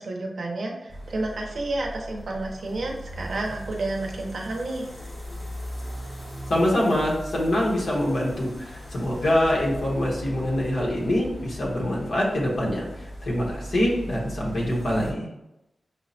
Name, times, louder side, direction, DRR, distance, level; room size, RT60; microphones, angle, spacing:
voice 1, 0.0-4.9, right 2 dB, 65° right, 1 dB, 0.6 m, -30 dB
sound 1, 0.9-15.1, equal, 35° left, 1.2 m, -39 dB
voice 2, 6.5-15.3, left 1 dB, 75° left, -4 dB, 1.0 m, -25 dB
5.5 x 2.0 x 2.7 m, 0.90 s
wide cardioid pair, 155°, 0 cm